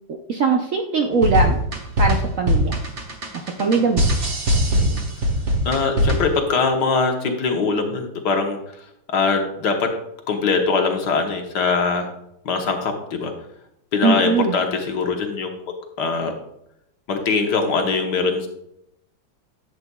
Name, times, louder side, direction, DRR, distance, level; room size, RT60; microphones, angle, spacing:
voice 1, 0.3-1.6 2.0-2.8 3.6-4.1 14.0-14.6, right 4 dB, 60° right, 2 dB, 0.8 m, -20 dB
sound 1, 1.1-6.4, equal, 40° right, 1.5 m, -21 dB
voice 2, 3.6-3.9 4.7-5.0 5.6-8.6 9.1-9.9 10.3-12.1 12.4-13.3 13.9-15.6 16.0-16.3 17.1-18.5, left 4 dB, 65° left, 4 dB, 1.5 m, -22 dB
11.0 x 7.8 x 2.3 m, 0.78 s
omnidirectional pair, 2.1 m